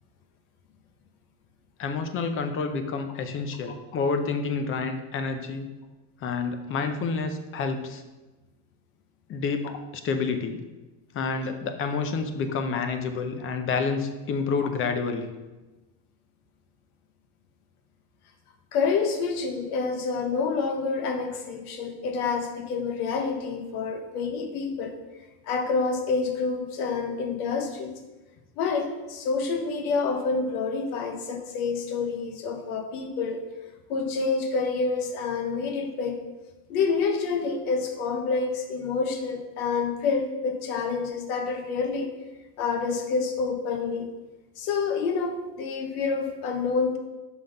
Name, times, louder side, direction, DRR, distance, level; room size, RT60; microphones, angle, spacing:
voice 1, 1.8-5.7 6.2-8.0 9.3-10.6 11.1-15.3, left 4 dB, 30° left, 8 dB, 0.6 m, -29 dB
voice 2, 18.7-24.9 25.4-27.9 28.6-33.5 33.9-36.2 36.7-42.1 42.6-44.1 44.6-47.0, left 4 dB, 85° left, 5 dB, 1.1 m, -28 dB
6.0 x 3.8 x 5.1 m, 1.1 s
supercardioid pair, 135°, 44 cm